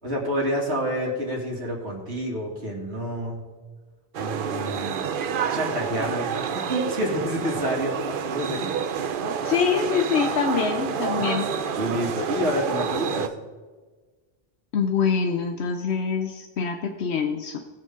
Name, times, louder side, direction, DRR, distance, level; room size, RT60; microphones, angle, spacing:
voice 1, 0.0-3.4 4.2-5.0 5.5-8.7 11.2-11.4 11.7-13.4, equal, 75° right, -2 dB, 2.8 m, -28 dB
sound 1, 4.1-13.3, right 7 dB, 60° right, 0.8 m, -28 dB
voice 2, 9.2-11.5 14.7-17.6, left 6 dB, 80° left, 6 dB, 1.0 m, -25 dB
19.0 x 6.5 x 3.7 m, 1.3 s
omnidirectional pair, 1.1 m